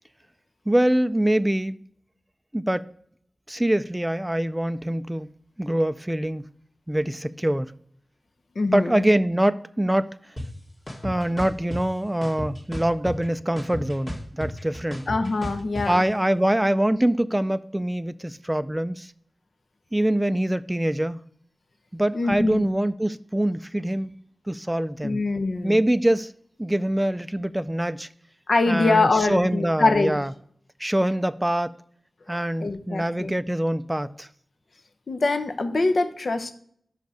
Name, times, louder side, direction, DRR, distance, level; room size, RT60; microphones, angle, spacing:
voice 1, 0.7-1.7 2.5-2.9 3.5-5.3 5.6-6.5 6.9-7.7 8.7-10.3 11.0-15.1 15.8-19.1 19.9-21.2 21.9-24.1 24.5-25.2 25.6-26.3 26.6-28.1 28.7-30.3 30.8-31.8 32.3-34.3, right 1 dB, 10° right, 0.3 m, -24 dB
voice 2, 8.6-9.0 15.1-16.0 22.1-22.7 25.0-25.8 28.5-30.2 32.3-33.3 35.1-36.5, left 3 dB, 70° left, 0.7 m, -24 dB
sound 1, 10.4-10.5 10.9-11.8 12.2-13.3 13.6-15.8, equal, 30° left, 1.6 m, -33 dB
5.7 x 5.3 x 6.1 m
wide cardioid pair, 55°, 0 cm